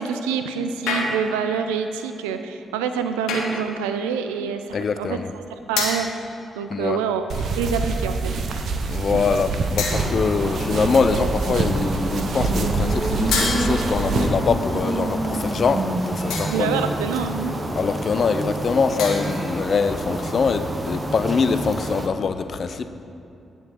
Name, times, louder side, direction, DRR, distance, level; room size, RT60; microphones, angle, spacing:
voice 1, 0.0-5.2 5.7-6.1 6.6-8.6 16.5-17.5, right 6 dB, 90° right, 8 dB, 0.3 m, -26 dB
sound 1, 0.9-1.5 3.3-3.7 5.8-6.2 7.3-7.7 8.4-8.5 9.8-10.4 13.3-14.1 16.3-16.8 19.0-19.5, left 4 dB, 80° left, 1.1 m, -28 dB
voice 2, 4.7-5.3 6.7-7.0 8.9-17.0 17.8-22.9, left 5 dB, 55° left, 10 dB, 0.4 m, -23 dB
sound 2, 7.3-14.3, right 3 dB, 65° right, 0.7 m, -26 dB
sound 3, 9.9-22.1, right 1 dB, 30° right, 0.8 m, -28 dB
9.9 x 3.6 x 6.3 m, 2.7 s
hypercardioid pair, 40°, 0 cm